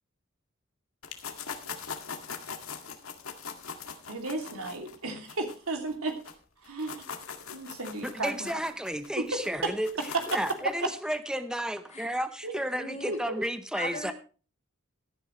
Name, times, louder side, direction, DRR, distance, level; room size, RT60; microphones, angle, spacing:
sound 1, 1.0-6.3 6.6-10.7, left 6 dB, 85° left, 2.0 m, -41 dB
voice 1, 4.1-6.2 6.7-7.0 7.5-8.5 9.3-9.4 12.4-12.5 13.1-13.2, right 2 dB, 85° right, 4 dB, 2.8 m, -34 dB
voice 2, 8.0-14.1, equal, 5° right, 10 dB, 0.8 m, -32 dB
voice 3, 12.7-13.2 13.7-14.1, left 2 dB, 30° left, 1 dB, 3.7 m, -39 dB
16.5 x 10.5 x 3.2 m, 0.36 s
head